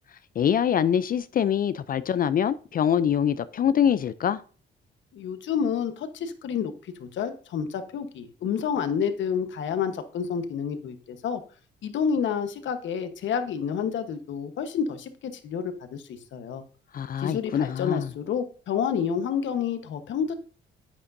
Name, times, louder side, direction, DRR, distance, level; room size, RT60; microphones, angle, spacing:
voice 1, 0.4-4.4 16.9-18.1, left 8 dB, 45° left, 0.4 m, -24 dB
voice 2, 5.1-11.4 11.8-16.6 17.2-20.3, left 7 dB, 70° left, 1.1 m, -29 dB
9.6 x 8.5 x 2.6 m
cardioid pair, 90°, 20 cm